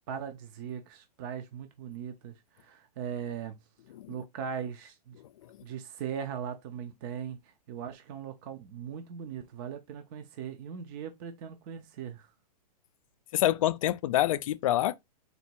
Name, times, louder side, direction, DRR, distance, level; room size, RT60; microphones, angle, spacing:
voice 1, 0.1-3.7 4.1-5.2 5.6-12.3, right 8 dB, 35° right, 0.5 m, -39 dB
voice 2, 13.3-15.0, left 13 dB, 55° left, 0.4 m, -26 dB
4.0 x 2.2 x 4.3 m
hypercardioid pair, 150°, 20 cm